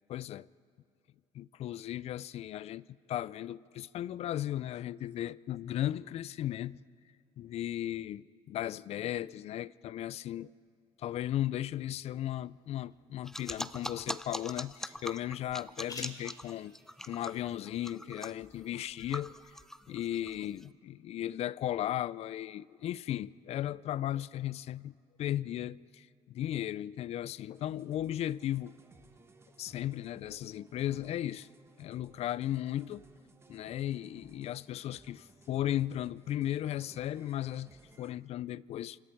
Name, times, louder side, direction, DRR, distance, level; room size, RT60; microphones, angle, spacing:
voice 1, 0.1-0.5 1.3-6.8 7.4-10.5 11.0-16.8 17.0-19.5 19.9-28.7 29.6-31.5 31.8-33.0 33.5-39.0, left 12 dB, 55° left, 0.4 m, -36 dB
sound 1, 11.8-19.3, left 3 dB, 30° left, 3.6 m, -55 dB
soapy sounds, 13.2-20.6, left 1 dB, 5° left, 0.6 m, -42 dB
sound 2, 27.5-38.1, right 3 dB, 20° right, 1.4 m, -60 dB
28.0 x 26.0 x 4.6 m
cardioid pair, 105°, 12 cm